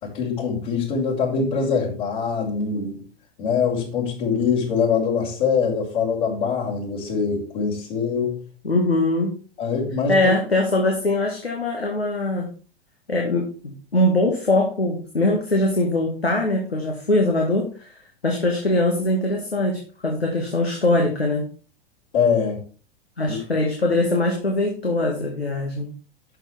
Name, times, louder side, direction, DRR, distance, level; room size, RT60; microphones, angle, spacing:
voice 1, 0.0-3.1 3.4-8.4 9.6-10.2 22.1-22.6 23.3-23.4, left 6 dB, 55° left, -9 dB, 5.5 m, -23 dB
voice 2, 8.6-9.4 10.1-12.5 13.1-17.9 18.2-21.5 23.2-25.9, left 2 dB, 90° left, 1 dB, 2.0 m, -22 dB
12.0 x 6.6 x 3.6 m, 0.38 s
figure-of-eight pair, 100°, 30 cm